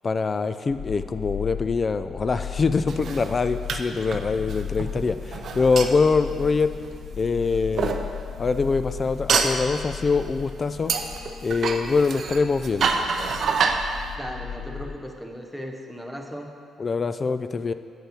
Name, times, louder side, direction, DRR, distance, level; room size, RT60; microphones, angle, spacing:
voice 1, 0.0-6.7 7.2-7.9 8.4-10.9 11.4-12.9 16.8-17.7, left 4 dB, 35° left, 11 dB, 0.3 m, -24 dB
sound 1, 0.7-14.9, left 8 dB, 60° left, 0.9 m, -36 dB
sound 2, 2.9-7.2 7.8-8.0 9.3-9.6 10.9-13.8, right 5 dB, 55° right, 0.5 m, -26 dB
voice 2, 14.2-16.6, equal, 5° left, 2 dB, 0.8 m, -37 dB
7.6 x 5.3 x 5.0 m, 2.2 s
cardioid pair, 110°, 0 cm